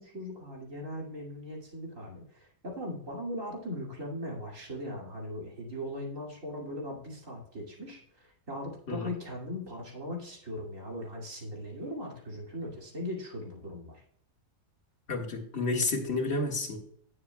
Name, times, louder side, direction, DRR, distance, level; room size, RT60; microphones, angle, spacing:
voice 1, 0.0-14.0, left 1 dB, 60° right, -2 dB, 2.8 m, -39 dB
voice 2, 15.1-16.8, left 3 dB, 45° left, 0 dB, 2.0 m, -30 dB
17.5 x 6.9 x 2.2 m, 0.64 s
omnidirectional pair, 1.5 m